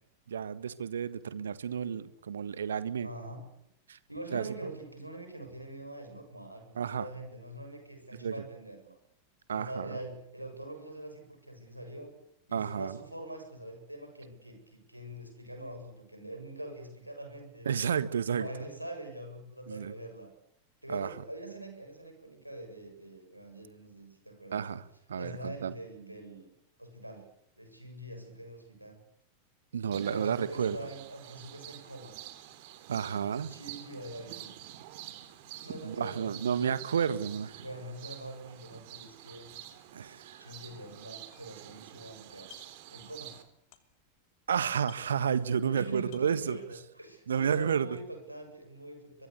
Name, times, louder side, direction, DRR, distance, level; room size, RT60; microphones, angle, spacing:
voice 1, 0.3-3.1 3.9-4.0 4.3-4.7 6.7-7.1 8.2-8.3 9.5-10.0 12.5-13.0 17.6-18.5 19.7-19.9 20.9-21.1 24.5-24.8 25.1-25.7 29.7-30.8 32.9-33.5 35.8-37.6 39.9-40.5 44.5-46.6 47.3-48.0, right 7 dB, 65° right, 15 dB, 1.6 m, -31 dB
voice 2, 3.0-3.4 4.1-9.0 9.5-12.1 12.5-17.7 18.3-20.3 20.8-24.7 25.1-26.5 26.8-27.3 27.6-29.0 30.1-32.1 33.3-34.5 35.6-36.6 37.6-39.5 40.4-42.5 42.9-43.4 45.7-49.3, right 1 dB, 90° right, 4 dB, 7.6 m, -44 dB
sound 1, 29.9-43.4, right 12 dB, 50° right, 3.3 m, -48 dB
sound 2, 40.5-40.8 41.0-42.0 42.3-42.9 43.2-44.2 44.5-44.6 44.8-45.7 46.0-46.5, left 13 dB, 45° left, 3.1 m, -56 dB
23.5 x 23.0 x 8.4 m, 0.75 s
figure-of-eight pair, 90°, 0 cm